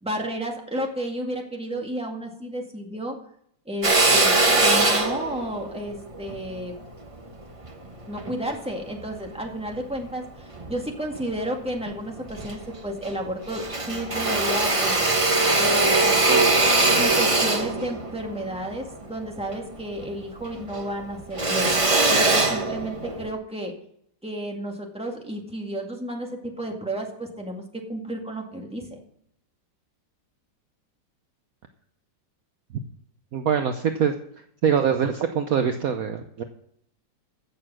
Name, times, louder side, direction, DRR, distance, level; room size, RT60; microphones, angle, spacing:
voice 1, 0.0-3.2 3.7-6.7 8.1-15.0 15.5-16.4 16.9-21.7 22.1-23.7 24.2-29.0, right 1 dB, 5° right, 1 dB, 1.9 m, -32 dB
Drill, 3.8-8.4 8.9-10.1 10.6-11.5 11.9-12.0 12.2-13.2 13.5-20.2 20.4-23.3, right 2 dB, 20° right, 1.0 m, -22 dB
voice 2, 33.3-34.1 34.6-36.4, right 7 dB, 60° right, 7 dB, 1.1 m, -23 dB
15.5 x 6.9 x 6.1 m, 0.69 s
omnidirectional pair, 2.0 m